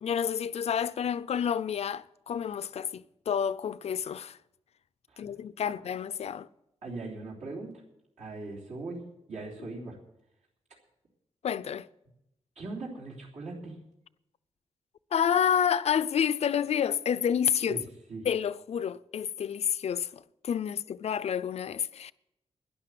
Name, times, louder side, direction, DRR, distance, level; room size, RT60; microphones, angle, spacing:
voice 1, 0.0-4.4 5.2-6.5 11.4-11.9 15.1-17.8 18.2-22.1, left 8 dB, 65° left, 0.5 m, -29 dB
voice 2, 6.8-7.7 8.2-10.0 12.5-13.8 17.6-17.8 18.1-18.3, right 3 dB, 75° right, 3.3 m, -40 dB
12.0 x 11.0 x 7.8 m
wide cardioid pair, 165°, 12 cm